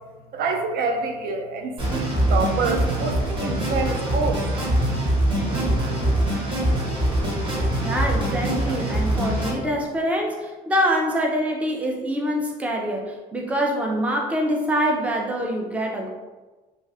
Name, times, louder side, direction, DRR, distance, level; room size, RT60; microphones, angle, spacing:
voice 1, 0.3-4.4, right 4 dB, 65° right, 4 dB, 0.5 m, -27 dB
sound 1, 1.8-9.5, right 1 dB, 30° right, 1.1 m, -23 dB
voice 2, 7.8-16.1, equal, 10° right, 0 dB, 0.4 m, -25 dB
2.6 x 2.4 x 3.2 m, 1.2 s
cardioid pair, 110°, 17 cm